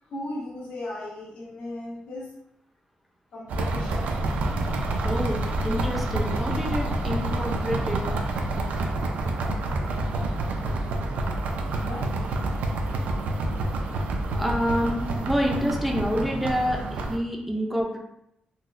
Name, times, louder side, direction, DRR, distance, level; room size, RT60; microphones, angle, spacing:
voice 1, 0.1-2.3 3.3-4.1 11.2-11.4 11.8-12.2, left 1 dB, 85° left, -6 dB, 1.2 m, -37 dB
sound 1, 3.5-17.2, right 2 dB, 90° right, 0.4 m, -28 dB
voice 2, 5.0-8.0 14.3-18.0, equal, 5° right, 0 dB, 0.4 m, -27 dB
4.0 x 2.1 x 2.5 m, 0.80 s
wide cardioid pair, 165°, 2 cm